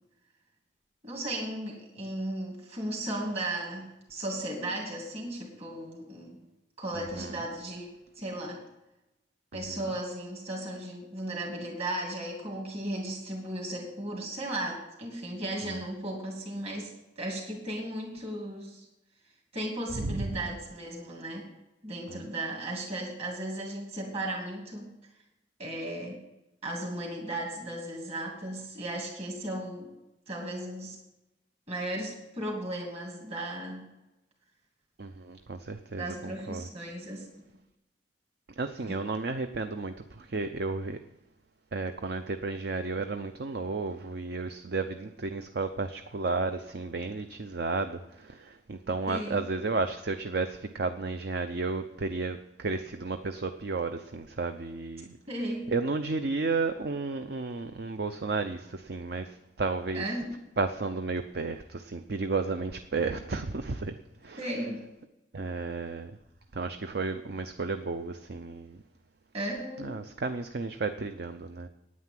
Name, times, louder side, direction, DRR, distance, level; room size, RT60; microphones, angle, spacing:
voice 1, 1.0-6.4 6.8-8.6 9.5-18.9 19.5-21.5 21.8-24.9 25.6-26.2 26.6-29.9 30.3-31.0 31.7-33.9 35.9-37.3 38.9-39.0 49.1-49.4 55.3-55.7 59.9-60.2 64.4-64.9 69.3-69.9, right 1 dB, 35° right, -1 dB, 2.6 m, -36 dB
voice 2, 6.9-7.5 9.5-9.9 15.6-15.8 19.9-20.5 22.1-22.3 35.0-36.7 38.6-41.0 41.7-60.1 60.6-64.0 64.2-64.6 65.3-66.2 66.5-68.8 69.8-71.7, right 3 dB, 60° right, 8 dB, 0.6 m, -33 dB
9.6 x 9.5 x 7.5 m, 0.95 s
head